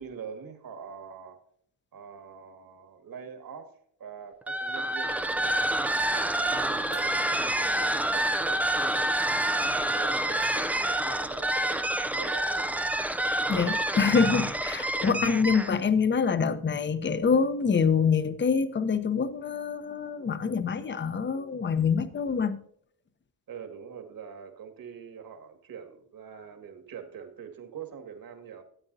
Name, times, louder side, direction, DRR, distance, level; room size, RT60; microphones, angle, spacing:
voice 1, 0.0-1.4 1.9-3.7 4.0-8.9 9.6-12.7 13.4-13.5 14.9-15.0 23.5-28.6, right 7 dB, 50° right, 7 dB, 1.9 m, -44 dB
sound 1, 4.4-15.8, right 1 dB, 5° right, 0.4 m, -28 dB
sound 2, 6.7-7.7 10.4-11.5, right 7 dB, 70° right, 1.2 m, -47 dB
voice 2, 13.5-22.6, left 5 dB, 25° left, 12 dB, 0.8 m, -25 dB
13.0 x 8.7 x 2.7 m, 0.65 s
cardioid pair, 90°, 46 cm